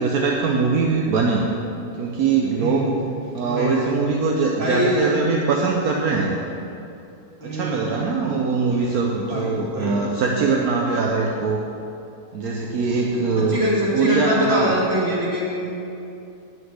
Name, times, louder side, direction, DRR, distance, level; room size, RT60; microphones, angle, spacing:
voice 1, 0.0-1.5 2.0-2.9 3.3-6.4 7.4-11.6 12.3-13.6 13.9-14.8, right 4 dB, 75° right, 0 dB, 1.3 m, -22 dB
voice 2, 2.6-3.0 3.5-3.9 4.6-5.1 7.4-7.9 9.3-10.0 13.4-15.6, equal, 40° right, -5 dB, 2.5 m, -23 dB
9.2 x 8.3 x 6.4 m, 2.8 s
omnidirectional pair, 1.6 m